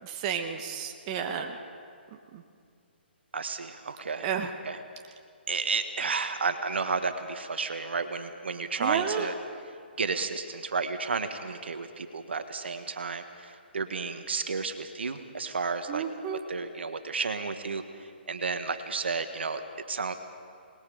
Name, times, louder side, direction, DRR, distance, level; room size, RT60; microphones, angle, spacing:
voice 1, 0.0-1.6 2.3-2.4 4.2-4.5 8.8-9.3 15.9-16.4, right 7 dB, 30° right, 4 dB, 1.3 m, -31 dB
voice 2, 3.3-4.8 5.5-9.3 10.0-16.0 16.5-19.6 19.9-20.2, right 4 dB, 75° right, 8 dB, 1.6 m, -32 dB
26.5 x 20.0 x 5.1 m, 2.2 s
hypercardioid pair, 140°, 6 cm